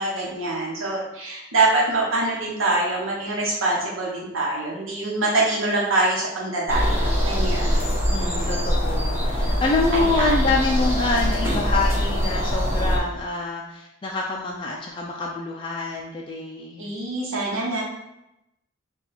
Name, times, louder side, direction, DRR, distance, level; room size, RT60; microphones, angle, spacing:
voice 1, 0.0-7.7 9.9-10.3 16.8-17.8, right 2 dB, 90° right, -4 dB, 0.9 m, -24 dB
sound 1, 6.7-13.0, equal, 10° right, 0.9 m, -23 dB
voice 2, 8.1-16.9, left 3 dB, 25° left, -2 dB, 0.3 m, -26 dB
4.0 x 2.3 x 4.2 m, 0.89 s
head